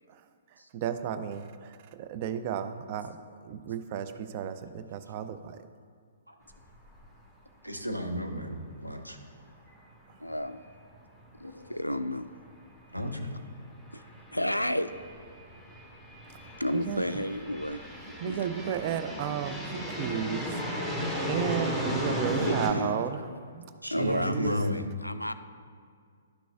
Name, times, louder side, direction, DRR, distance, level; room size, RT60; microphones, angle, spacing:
voice 1, 0.7-3.1 3.4-5.6 16.7-17.1 18.2-20.9 21.3-23.2 23.5-23.6 24.0-24.5, right 8 dB, 35° right, 10 dB, 0.4 m, -33 dB
Airplain take-off, 6.6-6.7 7.0-7.1 11.1-11.2 12.3-12.5 13.1-22.7, equal, 5° right, 1.0 m, -35 dB
voice 2, 7.6-9.2 11.4-11.7 12.9-13.3 23.8-24.8, left 1 dB, 90° right, 3 dB, 0.8 m, -33 dB
voice 3, 10.2-10.6 11.4-12.3 13.9-14.0 14.3-14.9 16.6-17.8 18.1-18.5 22.4-22.9 23.9-25.3, left 1 dB, 85° left, 12 dB, 0.3 m, -32 dB
11.5 x 6.1 x 2.3 m, 2.1 s
figure-of-eight pair, 120°, 0 cm